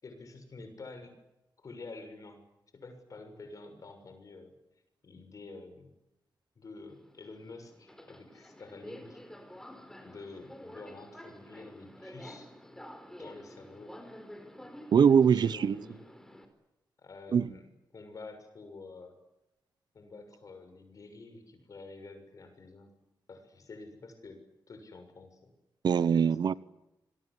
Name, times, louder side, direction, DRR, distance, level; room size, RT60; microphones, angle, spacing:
voice 1, 0.0-1.2 1.6-2.4 2.7-4.5 5.0-5.9 6.5-9.2 10.0-12.5 13.2-14.0 15.2-16.0 17.0-19.2 19.9-22.9 23.3-25.5 26.2-26.6, left 3 dB, 45° left, 6.8 m, -48 dB
Subway metro underground, 6.9-16.5, equal, 5° left, 4.2 m, -50 dB
voice 2, 14.9-15.8 17.3-17.5 25.8-26.5, right 7 dB, 65° right, 0.9 m, -22 dB
27.5 x 22.5 x 8.5 m
wide cardioid pair, 155°, 8 cm